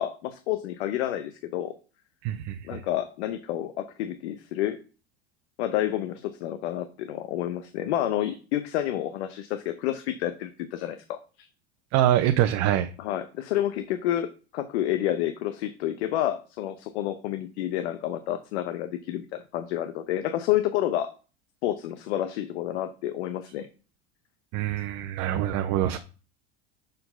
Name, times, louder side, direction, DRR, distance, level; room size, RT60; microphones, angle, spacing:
voice 1, 0.0-1.7 2.6-4.8 5.6-11.5 13.0-21.1 21.6-23.7, left 12 dB, 85° left, 10 dB, 0.8 m, -29 dB
voice 2, 2.2-2.8 11.9-12.9 24.5-26.0, right 12 dB, 55° right, 7 dB, 0.8 m, -24 dB
6.5 x 4.5 x 5.6 m, 0.35 s
supercardioid pair, 110°, 33 cm